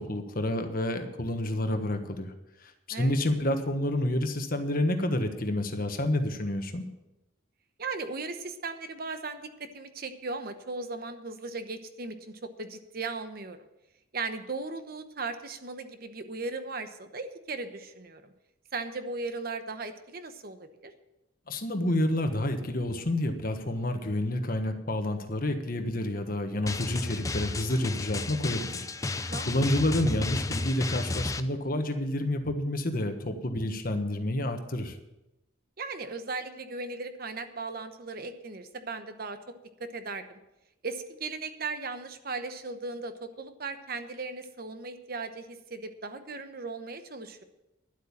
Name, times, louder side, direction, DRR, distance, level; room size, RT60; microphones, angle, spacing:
voice 1, 0.0-2.3 2.6-6.9 21.5-35.0, left 1 dB, 50° left, 6 dB, 1.3 m, -29 dB
voice 2, 7.8-13.6 14.1-18.3 18.7-20.9 29.3-29.5 35.8-39.4 39.8-40.2 40.8-47.4, right 3 dB, 50° right, 9 dB, 1.0 m, -37 dB
Drum, 26.7-31.4, left 2 dB, 15° left, 0.5 m, -33 dB
11.5 x 8.3 x 7.3 m, 0.95 s
head